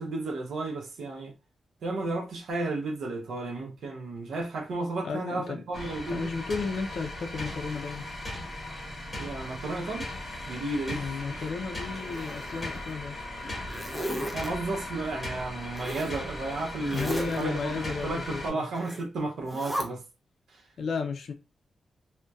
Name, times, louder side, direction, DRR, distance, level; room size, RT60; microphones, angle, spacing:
voice 1, 0.0-1.3 1.8-6.3 9.2-10.1 10.5-11.4 14.3-20.0, right 2 dB, 80° right, 0.6 m, -33 dB
voice 2, 5.0-5.6 6.1-8.1 10.9-13.3 15.9-16.0 16.8-18.7 20.8-21.3, left 5 dB, 65° left, 0.4 m, -33 dB
sound 1, 5.7-18.5, left 1 dB, 20° left, 1.0 m, -38 dB
Zipper (clothing), 11.9-12.9 13.4-14.5 15.7-16.2 16.8-17.4 18.7-19.0 19.4-19.8, right 1 dB, 5° right, 0.4 m, -35 dB
2.6 x 2.1 x 2.2 m
wide cardioid pair, 170°, 0 cm